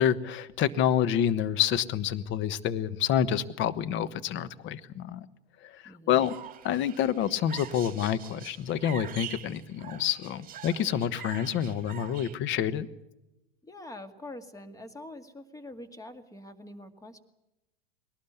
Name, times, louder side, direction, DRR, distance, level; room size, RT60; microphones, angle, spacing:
voice 1, 0.0-5.3 5.6-6.3 6.6-12.9, left 9 dB, 40° left, 14 dB, 1.2 m, -28 dB
voice 2, 5.8-6.3 13.6-17.2, left 1 dB, 10° left, 9 dB, 2.1 m, -45 dB
sound 1, 6.1-12.4, right 9 dB, 25° right, 2.7 m, -44 dB
21.5 x 18.5 x 8.2 m, 0.93 s
figure-of-eight pair, 85°, 31 cm